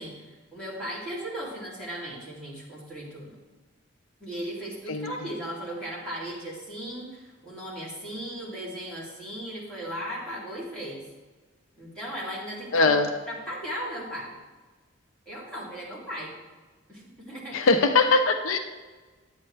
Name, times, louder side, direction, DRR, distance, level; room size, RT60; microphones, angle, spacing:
voice 1, 0.0-3.4 4.2-11.1 11.8-12.9 13.3-14.3 15.3-16.3 16.9-17.7, equal, 5° left, -8 dB, 2.7 m, -37 dB
voice 2, 4.9-5.3 12.7-13.1 17.5-18.6, left 3 dB, 85° left, 7 dB, 0.6 m, -21 dB
10.5 x 8.6 x 3.3 m, 1.3 s
head